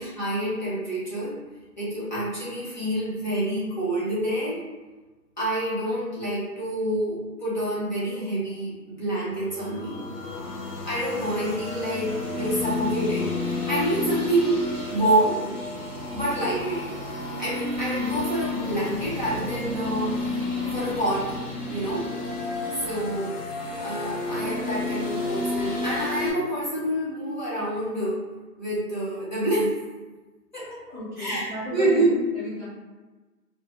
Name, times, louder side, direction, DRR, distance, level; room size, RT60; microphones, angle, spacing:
voice 1, 0.0-1.4 1.8-4.6 5.4-10.0 10.8-14.6 14.9-15.4 16.1-17.0 17.4-20.4 20.7-21.4 21.7-22.1 22.8-23.3 23.8-28.2 28.6-29.8 30.5-32.2, right 1 dB, 30° left, -10 dB, 0.7 m, -27 dB
sound 1, 9.4-26.3, left 2 dB, 70° left, 1.0 m, -31 dB
voice 2, 30.9-32.6, left 1 dB, 30° right, -8 dB, 0.5 m, -34 dB
2.0 x 2.0 x 3.1 m, 1.2 s
hypercardioid pair, 165°, 48 cm